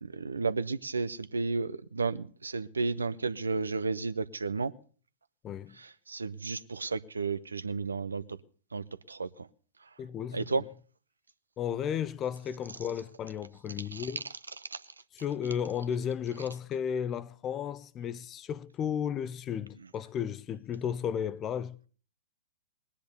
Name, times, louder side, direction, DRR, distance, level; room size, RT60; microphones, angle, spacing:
voice 1, 0.0-4.7 5.7-8.4 8.7-9.5 9.8-9.9 10.3-10.6 13.8-14.2 14.6-14.8, right 4 dB, 75° right, 0.8 m, -33 dB
voice 2, 5.4-5.8 10.0-10.4 11.6-14.2 15.2-21.8, left 8 dB, 25° left, 0.7 m, -34 dB
19.5 x 10.5 x 6.9 m
figure-of-eight pair, 105°, 0 cm